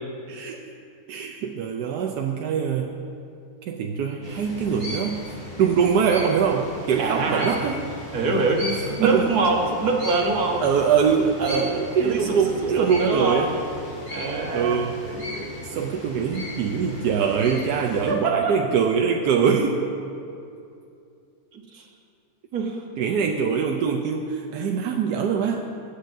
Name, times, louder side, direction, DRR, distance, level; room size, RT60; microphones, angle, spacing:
voice 1, 0.3-0.6 1.1-2.9 3.7-5.2 5.6-7.8 9.0-9.3 10.6-13.6 14.5-15.0 15.6-19.9 23.0-25.6, right 6 dB, 90° right, 2 dB, 1.2 m, -23 dB
sound 1, 4.2-18.1, left 1 dB, 80° left, 3.7 m, -37 dB
voice 2, 7.0-7.6 8.1-10.6 11.4-11.8 12.0-12.5 12.8-13.4 14.1-14.8 15.1-15.6 17.7-18.5 21.5-21.9 22.5-22.8, right 3 dB, 70° right, 0 dB, 1.8 m, -25 dB
21.0 x 8.2 x 2.7 m, 2.5 s
omnidirectional pair, 1.7 m